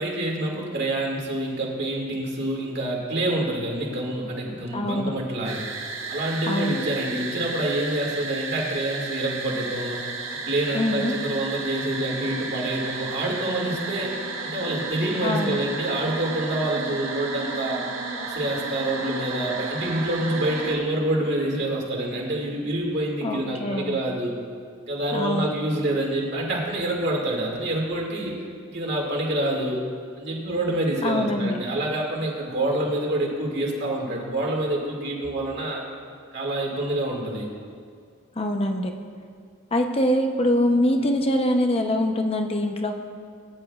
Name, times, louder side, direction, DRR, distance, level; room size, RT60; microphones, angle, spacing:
voice 1, 0.0-5.7 6.1-10.0 10.3-14.2 14.4-17.8 18.2-24.3 24.8-28.4 28.7-29.8 30.2-35.8 36.3-37.5, right 1 dB, 50° right, -2 dB, 2.2 m, -27 dB
voice 2, 4.7-5.1 6.5-6.8 10.7-11.1 15.2-15.5 23.2-24.0 25.1-25.5 31.0-31.6 38.4-38.9 39.7-42.9, left 1 dB, 25° left, 4 dB, 0.7 m, -24 dB
sound 1, 5.4-20.8, right 3 dB, 70° right, 1.5 m, -33 dB
20.0 x 10.5 x 2.4 m, 2.1 s
head